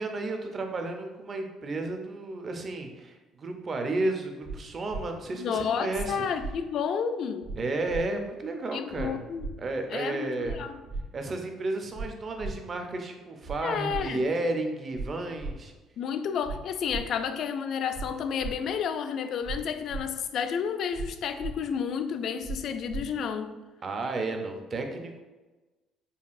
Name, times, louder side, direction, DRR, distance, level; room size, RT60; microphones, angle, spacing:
voice 1, 0.0-6.2 7.6-9.2 9.6-10.6 11.1-15.7 23.8-25.2, right 2 dB, 35° right, 4 dB, 0.5 m, -32 dB
sound 1, 4.4-4.5 4.9-5.0 5.9-6.0 6.4-6.5 7.4-7.6 7.9-8.0 8.9-9.0 9.4-9.5 10.4-10.5 10.9-11.0 11.9-12.1 12.4-12.5 13.4-13.5 13.9-14.0 14.9-15.1 15.4-15.5 16.4-16.5 16.9-17.0 17.9-18.0 18.4-18.5 19.4-19.6 19.9-20.0 20.9-21.1 21.4-21.5 22.4-22.6 22.9-23.0, right 4 dB, 80° right, 0.8 m, -35 dB
voice 2, 5.3-7.5 8.7-9.5 9.9-10.8 13.6-14.2 16.0-23.6, left 7 dB, 60° left, 8 dB, 0.3 m, -31 dB
5.3 x 2.4 x 2.5 m, 1.2 s
cardioid pair, 115°, 0 cm